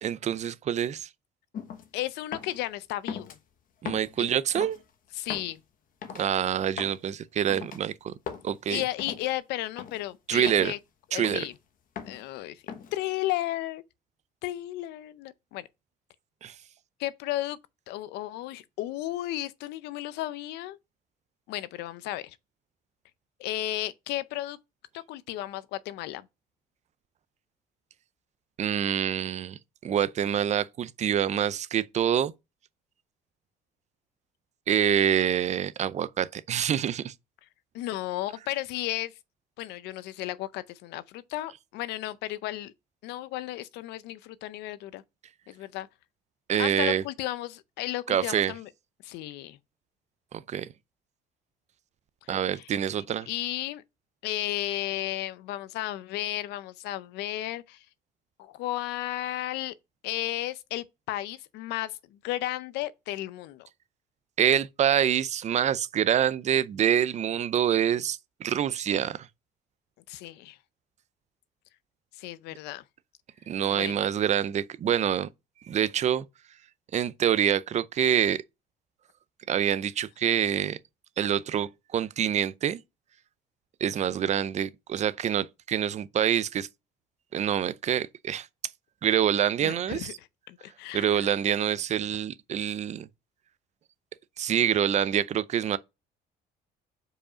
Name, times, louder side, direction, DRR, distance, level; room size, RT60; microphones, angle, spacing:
voice 1, 0.0-1.1 3.8-4.8 6.1-8.1 8.4-8.8 10.3-10.7 11.1-11.4 16.4-16.5 28.6-32.3 34.7-37.1 46.5-47.0 48.1-48.5 50.3-50.7 52.3-53.3 64.4-69.3 73.5-75.3 75.7-76.2 76.9-78.4 79.5-80.8 81.2-82.8 83.8-86.7 87.3-88.5 89.0-90.1 90.9-93.1 94.4-95.8, right 9 dB, 45° right, 0.5 m, -26 dB
sound 1, 1.5-1.9 2.3-2.6 3.1-3.4 3.8-4.2 4.5-4.8 5.3-5.5 6.0-6.3 6.8-7.0 7.5-7.8 8.3-8.5 9.0-9.3 9.8-10.0 10.5-10.7 11.2-11.5 11.9-12.2 12.7-13.0, left 7 dB, 55° left, 1.2 m, -38 dB
voice 2, 1.9-3.3 4.2-4.3 5.2-5.6 8.7-10.8 11.1-11.5 12.1-12.6 12.9-13.8 14.4-15.7 17.0-17.6 17.9-20.8 21.5-22.4 23.4-24.6 24.9-26.3 37.7-39.1 39.6-42.7 43.0-45.0 45.5-45.9 46.6-48.7 49.0-49.6 52.5-52.7 53.3-53.8 54.2-57.8 58.4-59.7 60.0-63.7 70.1-70.6 72.2-72.8 73.7-74.0 89.6-91.3, left 15 dB, 85° left, 0.5 m, -34 dB
5.0 x 4.8 x 5.0 m
cardioid pair, 110°, 17 cm